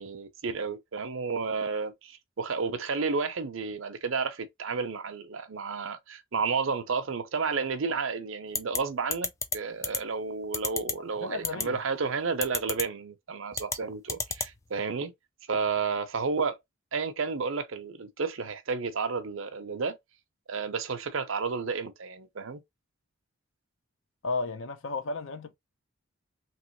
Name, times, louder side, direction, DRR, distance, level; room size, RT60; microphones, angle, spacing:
voice 1, 0.0-15.1 15.5-16.6 16.9-20.0 20.5-22.6, right 5 dB, 70° right, 0.6 m, -31 dB
sound 1, 8.5-8.8 9.1-9.6 9.8-10.0 10.5-10.9 11.4-11.6 12.4-12.8 13.5-13.8 14.1-14.5, left 4 dB, 15° left, 0.3 m, -28 dB
voice 2, 11.2-11.8 24.2-25.6, left 3 dB, 70° left, 0.6 m, -33 dB
3.0 x 3.0 x 2.9 m
head